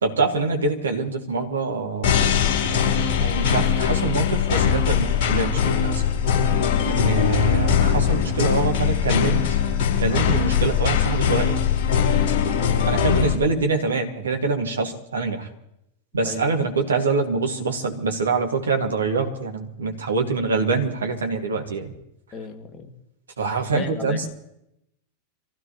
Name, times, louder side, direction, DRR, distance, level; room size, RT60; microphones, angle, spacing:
voice 1, 0.0-2.2 3.2-6.0 6.8-9.6 10.0-11.6 12.8-15.5 16.1-21.9 23.4-24.2, right 4 dB, 70° right, 4 dB, 2.2 m, -25 dB
sound 1, 2.0-13.3, left 8 dB, 45° left, 5.1 m, -21 dB
voice 2, 7.0-7.3 16.2-16.5 22.3-22.9 23.7-24.3, left 4 dB, 25° left, 3 dB, 2.4 m, -35 dB
26.0 x 16.0 x 3.2 m, 0.79 s
figure-of-eight pair, 90°, 0 cm